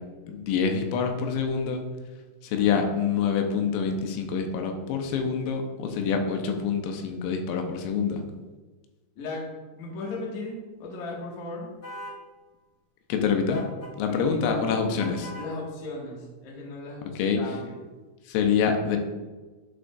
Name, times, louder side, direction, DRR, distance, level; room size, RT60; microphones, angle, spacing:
voice 1, 0.3-1.8 2.4-8.2 13.1-13.6 14.0-15.3 17.2-17.4 18.3-19.0, left 6 dB, 90° left, 4 dB, 3.4 m, -26 dB
voice 2, 9.2-9.5 9.7-11.7 13.4-13.7 14.1-17.8, left 3 dB, 65° left, -3 dB, 1.8 m, -36 dB
sound 1, 11.8-12.2 13.5-13.9 15.0-15.5, equal, 45° left, 1.5 m, -40 dB
11.5 x 5.2 x 2.5 m, 1.2 s
omnidirectional pair, 5.9 m